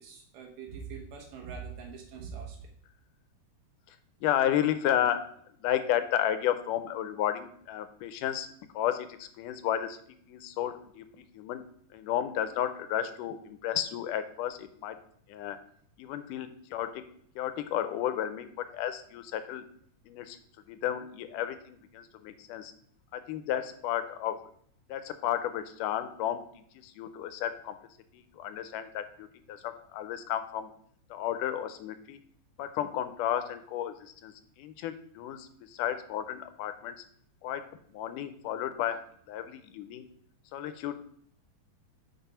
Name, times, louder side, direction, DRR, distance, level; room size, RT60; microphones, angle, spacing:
voice 1, 0.0-2.7, right 6 dB, 80° right, 0 dB, 3.0 m, -43 dB
voice 2, 4.2-5.3 5.6-8.5 8.7-10.0 10.3-11.6 11.9-15.0 15.3-15.6 16.0-17.0 17.4-19.7 20.1-20.4 20.7-22.7 23.1-24.4 24.9-26.4 26.8-27.8 28.1-30.7 31.1-32.2 32.6-37.0 37.4-40.1 40.5-41.0, left 11 dB, 80° left, 10 dB, 2.0 m, -32 dB
6.0 x 5.1 x 5.5 m, 0.63 s
omnidirectional pair, 3.8 m